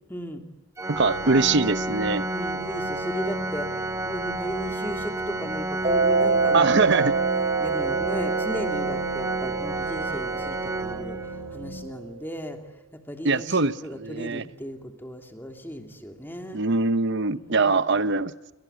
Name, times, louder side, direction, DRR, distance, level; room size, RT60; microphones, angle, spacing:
voice 1, 0.1-0.4 1.2-1.4 2.3-6.7 6.9-7.1 7.6-11.2 11.5-12.6 12.9-16.6 17.3-17.9, equal, 10° left, 4 dB, 2.9 m, -36 dB
Organ, 0.8-11.6, right 2 dB, 10° right, 1.0 m, -31 dB
sound 1, 0.9-11.9, left 3 dB, 70° left, 5.0 m, -40 dB
voice 2, 0.9-2.3 6.5-7.1 13.2-14.4 16.5-18.3, right 3 dB, 55° right, 14 dB, 0.9 m, -23 dB
Mallet percussion, 5.8-12.2, right 4 dB, 30° right, 3.4 m, -27 dB
29.0 x 24.5 x 8.2 m, 1.0 s
head